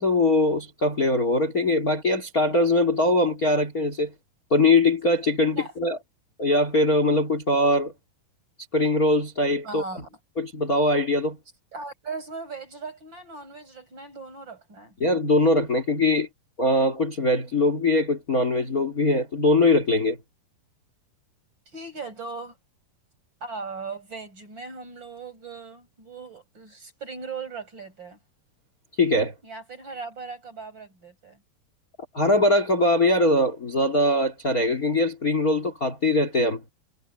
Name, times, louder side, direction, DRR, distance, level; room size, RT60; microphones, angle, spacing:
voice 1, 0.0-4.1 4.5-6.0 6.4-7.9 8.7-9.8 10.4-11.4 15.0-16.3 16.6-20.2 29.0-29.3 32.1-36.6, left 2 dB, 25° left, 3.0 m, -22 dB
voice 2, 9.6-10.2 11.7-14.9 21.7-22.6 23.4-28.2 29.4-31.4, right 4 dB, 30° right, 7.0 m, -38 dB
omnidirectional pair, 4.5 m